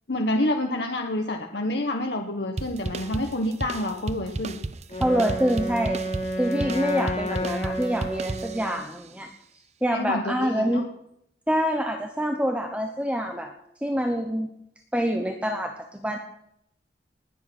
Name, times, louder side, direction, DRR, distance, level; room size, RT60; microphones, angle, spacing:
voice 1, 0.1-4.6 9.9-10.8, left 1 dB, 65° left, 3 dB, 1.1 m, -28 dB
sound 1, 2.6-8.9, right 2 dB, 35° right, 0.6 m, -34 dB
Wind instrument woodwind instrument, 4.9-8.9, equal, 35° left, 2.3 m, -30 dB
voice 2, 5.0-6.0 6.4-9.3 9.8-10.9 11.5-13.5 13.8-14.5 14.9-16.2, equal, 5° right, 4 dB, 1.0 m, -26 dB
19.5 x 8.5 x 6.2 m, 0.78 s
head